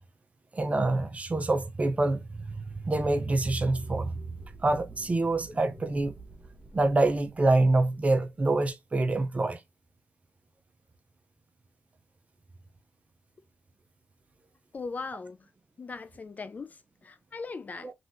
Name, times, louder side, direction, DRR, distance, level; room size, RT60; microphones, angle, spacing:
voice 1, 0.5-4.2 4.6-6.1 6.7-9.6, right 2 dB, 30° right, 0.7 m, -26 dB
sound 1, 2.2-8.6, right 2 dB, 10° left, 1.1 m, -49 dB
voice 2, 14.7-15.5 15.8-17.9, left 4 dB, 35° left, 0.3 m, -39 dB
3.3 x 2.9 x 2.6 m
cardioid pair, 90°, 5 cm